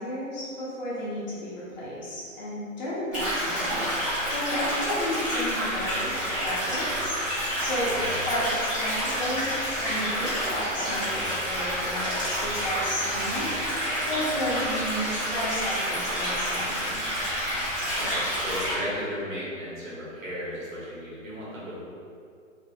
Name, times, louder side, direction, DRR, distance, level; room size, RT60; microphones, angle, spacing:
voice 1, 0.0-3.8 4.3-7.2 7.6-8.0 8.2-13.5 14.1-17.0, equal, 35° left, -7 dB, 0.9 m, -32 dB
sound 1, 3.1-18.7, equal, 5° right, 0.8 m, -29 dB
voice 2, 17.9-21.7, equal, 80° right, -8 dB, 1.5 m, -35 dB
2.9 x 2.5 x 2.8 m, 2.4 s
hypercardioid pair, 145°, 40 cm